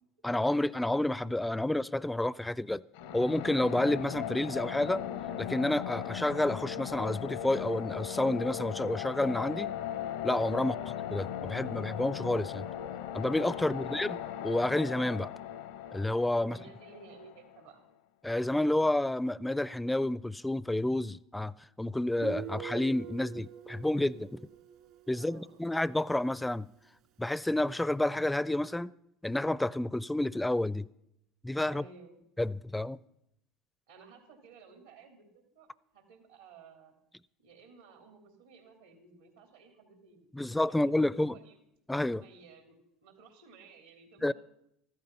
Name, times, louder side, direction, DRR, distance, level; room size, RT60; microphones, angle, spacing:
voice 1, 0.2-2.8 3.1-5.0 5.4-9.7 10.2-10.7 11.1-12.7 13.1-14.1 14.4-15.3 15.9-16.6 18.2-21.5 21.8-24.4 25.1-26.7 27.2-28.9 29.2-30.9 31.4-31.8 32.4-33.0 40.3-41.3 41.9-42.2 44.2-44.3, left 1 dB, 10° left, 0.4 m, -30 dB
sound 1, 2.9-17.6, left 10 dB, 80° left, 0.8 m, -38 dB
voice 2, 10.6-10.9 13.6-14.2 16.4-17.8 25.1-25.7 31.6-32.2 33.9-35.2 35.5-36.9 37.4-41.6 42.2-44.3, right 5 dB, 85° right, 3.0 m, -55 dB
Guitar, 22.2-25.7, right 9 dB, 65° right, 2.0 m, -44 dB
14.5 x 12.5 x 5.5 m
hypercardioid pair, 75°, 0 cm